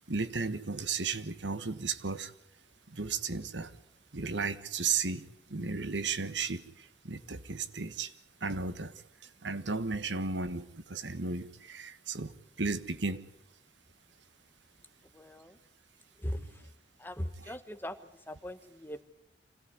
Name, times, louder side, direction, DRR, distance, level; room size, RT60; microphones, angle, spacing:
voice 1, 0.1-2.3 3.0-3.7 4.1-5.2 5.5-6.6 7.0-8.1 8.4-8.9 9.4-12.3 12.6-13.2, right 4 dB, 85° right, 1.4 m, -34 dB
voice 2, 15.1-15.6 16.2-16.7 17.0-19.0, equal, 10° left, 1.2 m, -40 dB
25.5 x 17.5 x 9.6 m
head